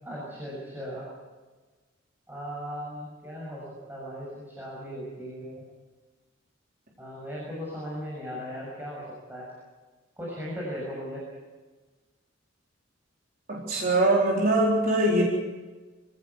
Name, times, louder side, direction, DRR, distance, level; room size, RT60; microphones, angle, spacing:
voice 1, 0.0-1.1 2.3-5.6 7.0-9.0 9.3-9.5 10.2-11.2, equal, 10° right, -5 dB, 7.1 m, -37 dB
voice 2, 13.5-15.2, right 1 dB, 45° right, -3 dB, 4.2 m, -22 dB
26.5 x 17.0 x 8.3 m, 1.3 s
head